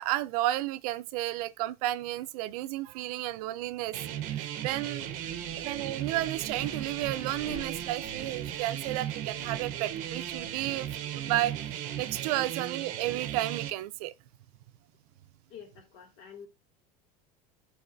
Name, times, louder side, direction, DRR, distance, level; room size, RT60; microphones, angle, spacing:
voice 1, 0.0-4.0 4.3-5.1 5.6-14.1, right 15 dB, 85° right, 0.5 m, -32 dB
sound 1, 3.9-13.7, right 11 dB, 45° right, 0.8 m, -36 dB
Wind, 4.5-11.3, left 2 dB, 75° left, 1.9 m, -50 dB
voice 2, 15.5-16.5, left 7 dB, 55° left, 2.3 m, -48 dB
12.0 x 4.1 x 2.6 m
cardioid pair, 175°, 19 cm